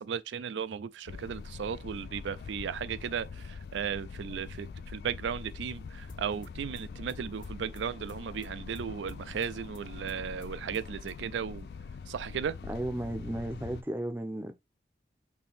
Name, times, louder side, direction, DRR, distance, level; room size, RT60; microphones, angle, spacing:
voice 1, 0.0-11.7 12.1-12.6, right 7 dB, 90° right, 0.4 m, -36 dB
sound 1, 1.1-13.8, left 5 dB, 65° left, 0.3 m, -44 dB
sound 2, 6.1-11.4, left 2 dB, 45° left, 0.7 m, -55 dB
voice 2, 12.7-14.6, right 1 dB, 10° right, 0.5 m, -34 dB
5.3 x 2.7 x 3.4 m
head